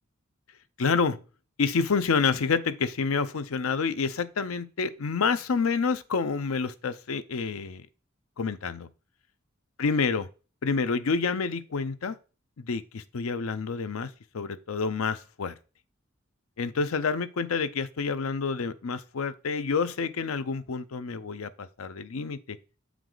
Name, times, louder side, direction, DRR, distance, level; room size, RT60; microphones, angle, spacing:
voice 1, 0.8-1.2 1.6-7.9 8.4-8.9 9.8-10.3 10.6-12.2 12.6-15.5 16.6-22.6, left 5 dB, 90° left, 0.6 m, -28 dB
8.0 x 4.7 x 3.8 m
head